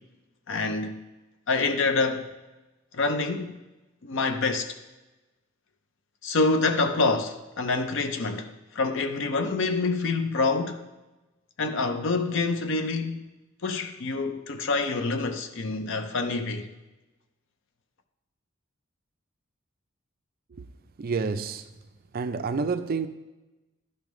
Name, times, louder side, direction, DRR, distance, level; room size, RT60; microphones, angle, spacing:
voice 1, 0.5-1.0 1.5-2.3 2.9-3.5 4.0-4.8 6.2-8.5 8.7-10.8 11.6-13.3 13.6-16.7, left 3 dB, 65° left, 0.6 m, -26 dB
voice 2, 21.0-21.7 22.1-23.1, right 4 dB, 45° right, 0.4 m, -28 dB
11.5 x 5.3 x 3.1 m
head